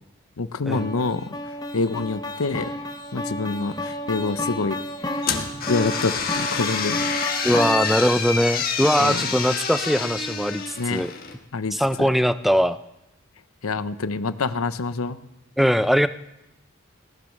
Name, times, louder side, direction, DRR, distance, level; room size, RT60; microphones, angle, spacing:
voice 1, 0.4-1.3 1.7-2.7 3.1-4.8 5.1-5.2 5.7-7.1 9.0-9.2 10.8-11.0 11.5-11.7 13.6-15.2, left 3 dB, 85° left, 14 dB, 0.7 m, -26 dB
sound 1, 0.7-8.1, left 1 dB, 20° left, 1.0 m, -31 dB
sound 2, 5.2-11.4, left 6 dB, 45° left, 1.5 m, -27 dB
voice 2, 7.4-11.1 11.7-12.8 15.6-16.1, equal, ahead, 12 dB, 0.4 m, -21 dB
18.0 x 10.5 x 6.5 m, 0.88 s
head